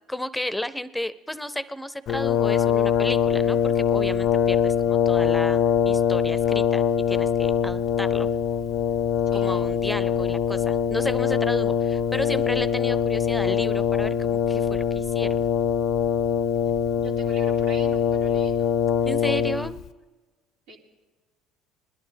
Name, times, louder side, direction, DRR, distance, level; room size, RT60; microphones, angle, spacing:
voice 1, 0.1-8.3 9.3-15.5 19.1-19.7, left 1 dB, 5° left, 15 dB, 0.6 m, -33 dB
Brass instrument, 2.1-19.9, left 8 dB, 60° left, 0.5 m, -23 dB
voice 2, 9.2-9.7 17.0-18.7 20.7-20.8, right 2 dB, 80° right, -6 dB, 2.4 m, -43 dB
20.5 x 11.0 x 3.4 m, 1.3 s
hypercardioid pair, 70°, 0 cm